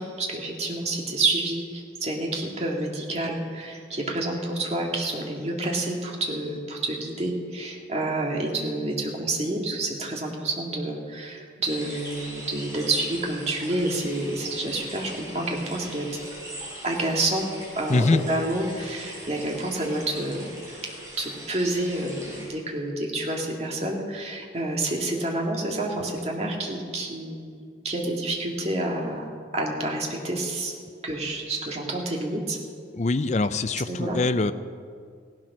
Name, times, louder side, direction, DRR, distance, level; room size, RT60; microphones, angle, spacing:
voice 1, 0.0-16.1 16.8-17.5 17.8-20.5 21.2-30.7 31.0-32.6 33.9-34.2, right 2 dB, 35° right, 0 dB, 2.1 m, -29 dB
sound 1, 11.6-22.4, right 1 dB, 20° right, 5.2 m, -41 dB
voice 2, 32.9-34.5, left 3 dB, 40° left, 12 dB, 0.5 m, -23 dB
16.5 x 12.0 x 6.1 m, 2.1 s
head